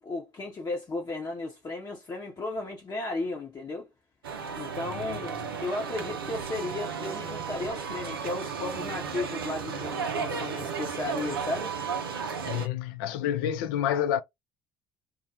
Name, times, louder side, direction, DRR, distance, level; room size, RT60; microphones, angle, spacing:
voice 1, 0.0-3.9 4.5-11.7, left 2 dB, 35° left, 0.7 m, -34 dB
sound 1, 4.2-12.7, right 6 dB, 90° right, 0.4 m, -34 dB
voice 2, 12.4-14.2, left 10 dB, 70° left, 0.4 m, -28 dB
2.2 x 2.1 x 2.8 m
hypercardioid pair, 55°, 12 cm